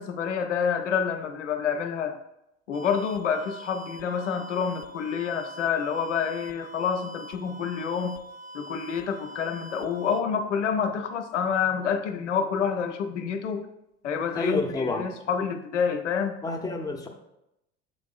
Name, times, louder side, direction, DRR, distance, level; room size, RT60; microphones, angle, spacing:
voice 1, 0.0-2.2 2.7-8.2 8.5-13.7 14.0-16.4, left 6 dB, 80° left, 6 dB, 0.6 m, -28 dB
sound 1, 2.7-10.2, right 1 dB, 65° right, 0.5 m, -44 dB
voice 2, 14.3-15.1 16.4-17.1, left 3 dB, 10° left, 1 dB, 0.6 m, -28 dB
7.4 x 2.6 x 2.3 m, 0.85 s
figure-of-eight pair, 70°, 35 cm